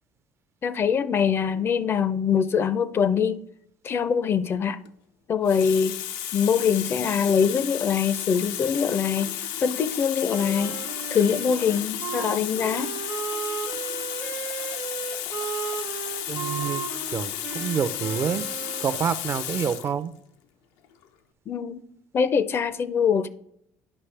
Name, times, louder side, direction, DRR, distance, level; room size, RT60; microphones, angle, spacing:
voice 1, 0.6-3.4 3.8-4.8 5.3-6.0 6.3-10.8 11.1-12.9 21.5-21.8 22.1-23.3, left 7 dB, 40° left, 0.4 m, -23 dB
Water tap faucet, 4.6-4.9 5.5-20.0 20.8-21.0, left 11 dB, 90° left, 0.5 m, -33 dB
Wind instrument woodwind instrument, 10.3-19.2, right 7 dB, 70° right, 1.0 m, -35 dB
voice 2, 16.3-16.8 17.1-18.4 18.8-20.1, right 7 dB, 40° right, 0.4 m, -27 dB
9.7 x 5.5 x 3.3 m
cardioid pair, 105°, 6 cm